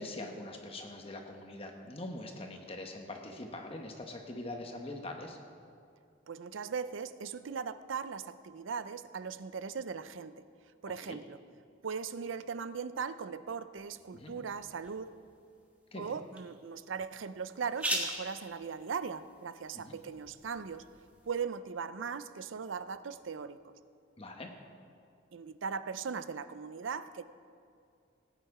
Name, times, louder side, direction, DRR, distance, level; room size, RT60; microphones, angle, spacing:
voice 1, 0.0-5.4 11.0-11.2 14.1-14.3 15.9-16.2 19.7-20.0 24.2-24.5, left 2 dB, 30° left, 3 dB, 1.0 m, -43 dB
voice 2, 6.3-10.4 10.8-11.4 11.8-15.2 16.0-20.9 21.3-23.7 25.3-27.2, right 6 dB, 80° right, 14 dB, 0.5 m, -39 dB
sound 1, 13.8-21.3, right 1 dB, 10° right, 1.5 m, -43 dB
17.5 x 9.2 x 4.8 m, 2.4 s
head